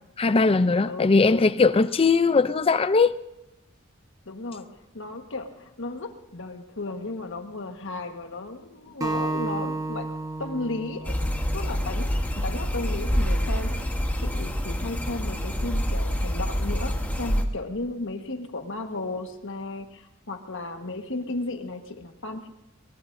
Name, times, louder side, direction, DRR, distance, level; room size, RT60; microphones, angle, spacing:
voice 1, 0.2-3.2, left 4 dB, 25° left, 0.5 m, -20 dB
voice 2, 4.2-4.7 4.9-10.1 10.4-11.1 11.5-22.5, left 2 dB, 65° left, 1.4 m, -34 dB
Acoustic guitar, 9.0-12.3, right 2 dB, 15° right, 1.4 m, -32 dB
sound 1, 11.0-17.4, equal, 10° left, 1.3 m, -27 dB
23.0 x 21.5 x 2.6 m
head